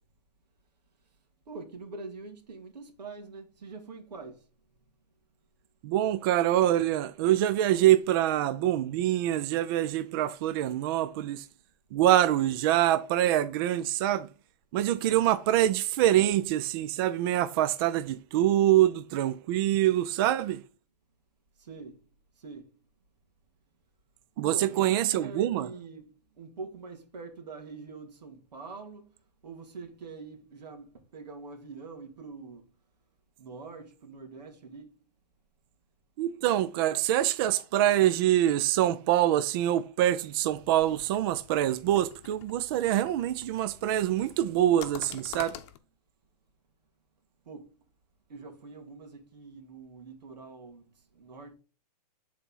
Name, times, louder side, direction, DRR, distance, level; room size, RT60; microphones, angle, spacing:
voice 1, 1.5-4.4 21.6-22.0 22.4-22.7 24.4-26.1 26.4-29.1 29.4-32.6 33.4-34.9 47.5-47.7 48.3-50.8 51.1-51.5, right 4 dB, 90° right, 2.2 m, -44 dB
voice 2, 5.8-11.5 11.9-14.3 14.7-20.6 24.4-25.7 36.2-45.6, right 12 dB, 35° right, 0.4 m, -25 dB
sound 1, 40.5-45.8, left 12 dB, 45° left, 0.8 m, -48 dB
8.4 x 4.2 x 5.5 m
hypercardioid pair, 150°, 21 cm